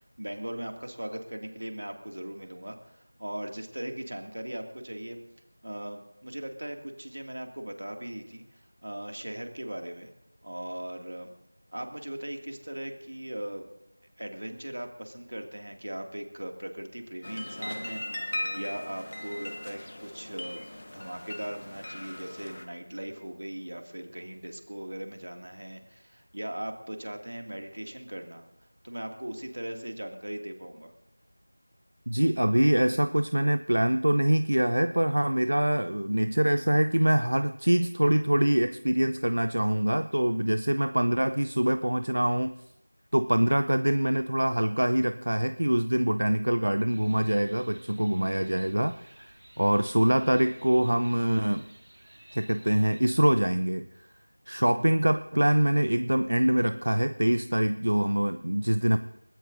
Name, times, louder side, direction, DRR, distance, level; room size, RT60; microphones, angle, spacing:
voice 1, 0.0-5.2 5.6-10.1 10.4-11.3 11.7-13.7 14.2-30.9, right 1 dB, 55° right, 4 dB, 2.2 m, -39 dB
sound 1, 17.2-22.7, left 1 dB, 30° left, 1.0 m, -38 dB
voice 2, 32.1-42.5 43.1-51.7 52.3-53.9 54.5-59.0, right 1 dB, 75° right, 11 dB, 0.6 m, -24 dB
sound 2, 46.9-53.0, right 1 dB, 35° right, 2.0 m, -54 dB
29.0 x 13.5 x 2.6 m, 0.84 s
figure-of-eight pair, 180°, 0 cm